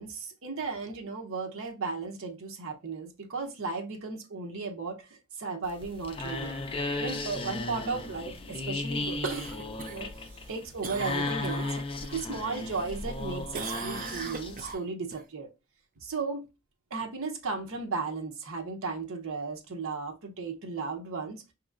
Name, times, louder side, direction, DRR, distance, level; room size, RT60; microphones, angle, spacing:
voice 1, 0.0-6.6 7.0-10.1 10.5-11.7 12.1-15.5 16.0-16.4 16.9-21.4, right 4 dB, 65° right, 0.8 m, -35 dB
sound 1, 5.6-14.7, left 2 dB, 25° left, 0.5 m, -35 dB
Cough, 9.2-12.2 12.6-13.2 13.5-15.2 19.6-19.7, right 5 dB, 40° right, 0.4 m, -41 dB
5.1 x 2.9 x 2.4 m
head